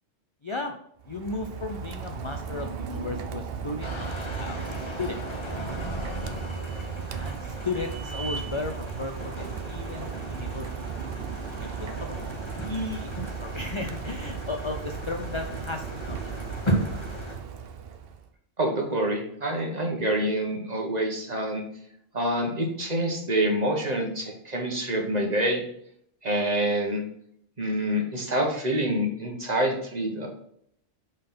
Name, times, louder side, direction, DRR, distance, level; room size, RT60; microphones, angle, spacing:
voice 1, 0.4-0.7 1.1-4.1 4.4-4.6 5.0-5.2 5.8-6.0 7.2-10.7 11.5-12.2 12.7-16.4, left 3 dB, 45° left, 4 dB, 0.4 m, -35 dB
Rain, 1.0-18.3, right 7 dB, 60° right, 0.8 m, -36 dB
sound 1, 3.8-17.4, right 1 dB, 25° left, 1.0 m, -36 dB
voice 2, 18.6-21.6 22.1-25.6 26.2-27.0 27.6-30.3, right 1 dB, 35° right, 1 dB, 1.4 m, -26 dB
5.4 x 4.0 x 5.6 m, 0.70 s
omnidirectional pair, 1.2 m